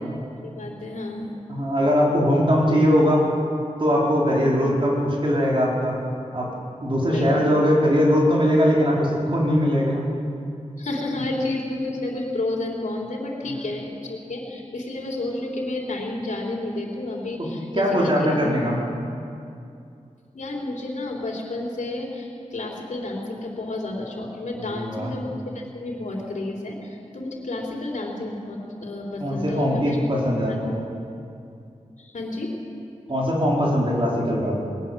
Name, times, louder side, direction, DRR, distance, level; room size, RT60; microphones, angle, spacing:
voice 1, 0.4-1.3 4.3-4.5 7.1-7.4 10.8-18.5 20.3-30.0 30.5-30.6 32.0-32.6, left 2 dB, 80° left, -2 dB, 3.6 m, -31 dB
voice 2, 1.5-3.2 3.8-6.0 6.3-6.5 6.8-10.1 13.4-13.5 17.7-18.8 24.6-25.1 29.2-30.8 33.1-34.6, equal, 45° right, -4 dB, 4.6 m, -21 dB
20.0 x 19.5 x 7.6 m, 2.5 s
wide cardioid pair, 110°, 13 cm